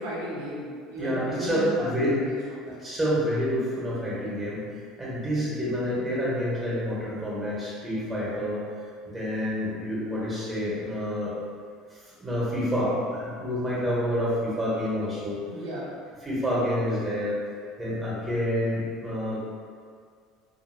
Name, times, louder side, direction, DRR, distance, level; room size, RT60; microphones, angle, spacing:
voice 1, 0.0-2.8 15.5-15.9, equal, 85° right, -8 dB, 0.7 m, -35 dB
voice 2, 1.0-2.1 2.8-4.6 5.0-8.6 9.0-11.3 11.9-15.4 16.2-17.3 17.8-19.5, equal, 20° right, -7 dB, 1.2 m, -28 dB
2.7 x 2.6 x 2.7 m, 2.1 s
supercardioid pair, 85°, 0 cm